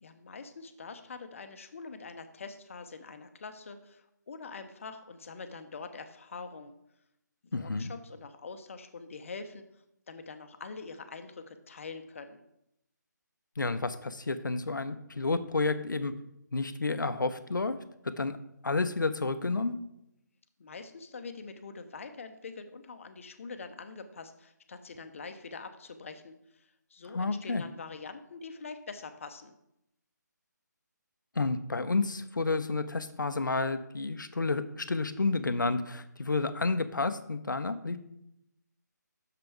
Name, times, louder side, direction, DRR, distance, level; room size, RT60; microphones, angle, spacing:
voice 1, 0.0-6.7 7.5-9.6 10.1-12.4 20.6-29.5, left 4 dB, 45° left, 8 dB, 0.7 m, -44 dB
voice 2, 7.5-7.9 13.6-16.1 16.5-17.8 18.0-18.4 18.6-19.7 27.1-27.6 31.4-38.0, left 3 dB, 90° left, 11 dB, 0.7 m, -30 dB
6.7 x 5.4 x 4.6 m, 0.81 s
figure-of-eight pair, 160°, 10 cm